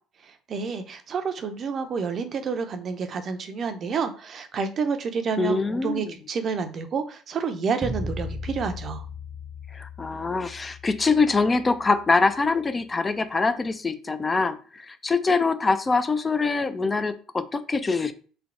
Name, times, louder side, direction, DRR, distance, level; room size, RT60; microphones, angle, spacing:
voice 1, 0.5-9.0, right 5 dB, 45° right, 7 dB, 0.7 m, -29 dB
voice 2, 5.4-6.2 9.7-18.1, left 4 dB, 25° left, 11 dB, 0.5 m, -24 dB
sound 1, 7.8-12.8, left 2 dB, 15° right, 0.7 m, -37 dB
3.4 x 2.9 x 3.7 m, 0.40 s
hypercardioid pair, 60°, 0 cm